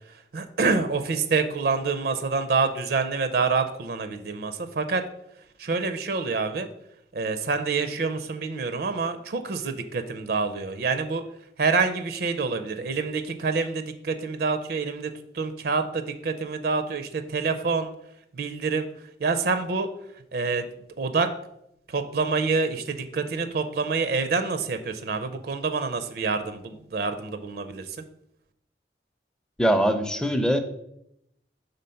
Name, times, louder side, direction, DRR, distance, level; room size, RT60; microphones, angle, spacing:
voice 1, 0.3-5.0 5.6-6.7 7.1-11.2 11.6-17.9 18.3-18.9 19.2-19.9 20.3-20.7 21.0-21.3 21.9-28.0, right 4 dB, 60° right, 9 dB, 0.5 m, -27 dB
voice 2, 29.6-30.6, equal, 5° left, 8 dB, 0.4 m, -22 dB
5.2 x 4.0 x 5.6 m, 0.78 s
head